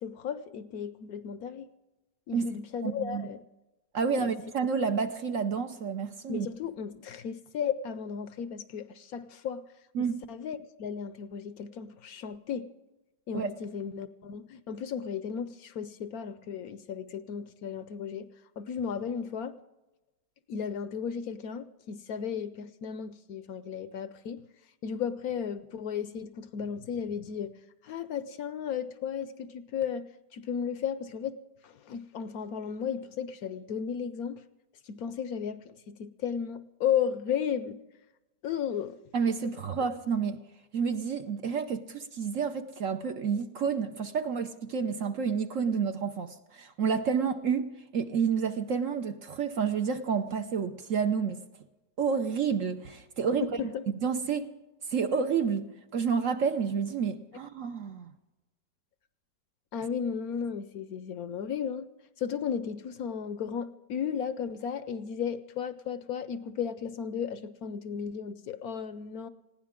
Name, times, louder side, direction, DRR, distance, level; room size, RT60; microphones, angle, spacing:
voice 1, 0.0-1.7 2.3-3.4 4.2-4.3 6.3-9.6 10.0-12.7 13.3-18.3 18.6-19.6 20.5-24.4 24.8-27.5 27.8-30.1 30.3-31.4 31.6-34.4 34.9-37.8 38.4-39.0 39.4-39.5 53.7-53.8 59.7-61.9 62.2-69.3, left 7 dB, 65° left, 1.0 m, -34 dB
voice 2, 2.8-3.3 3.9-6.5 9.9-10.2 13.3-13.5 39.1-40.4 40.7-51.4 52.0-53.6 53.9-54.5 54.9-58.1, right 6 dB, 60° right, 0.9 m, -29 dB
20.5 x 16.0 x 3.7 m
omnidirectional pair, 1.9 m